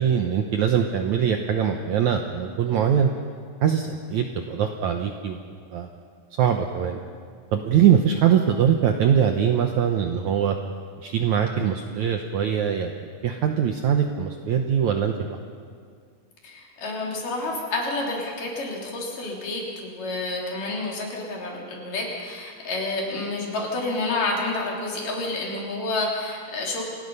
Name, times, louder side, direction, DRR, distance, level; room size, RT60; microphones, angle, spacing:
voice 1, 0.0-3.1 3.6-5.4 5.7-5.9 6.4-7.0 7.5-10.6 11.0-15.4, right 8 dB, 70° right, 4 dB, 1.8 m, -22 dB
voice 2, 16.4-26.9, left 2 dB, 60° left, -2 dB, 4.9 m, -29 dB
27.5 x 18.5 x 5.5 m, 2.1 s
omnidirectional pair, 4.4 m